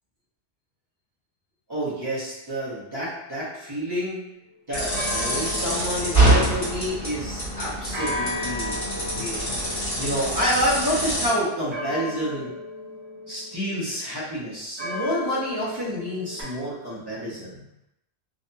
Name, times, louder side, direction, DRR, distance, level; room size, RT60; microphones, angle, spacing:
voice 1, 1.7-4.2 4.7-9.4 10.0-12.5 13.3-17.6, equal, 25° right, -8 dB, 0.8 m, -28 dB
sound 1, 4.4-4.6 4.9-7.3 7.9-14.1 14.8-16.4, left 2 dB, 50° right, 1.1 m, -36 dB
sound 2, 4.7-11.3, right 1 dB, 25° left, 1.3 m, -25 dB
2.7 x 2.5 x 2.2 m, 0.83 s
omnidirectional pair, 1.1 m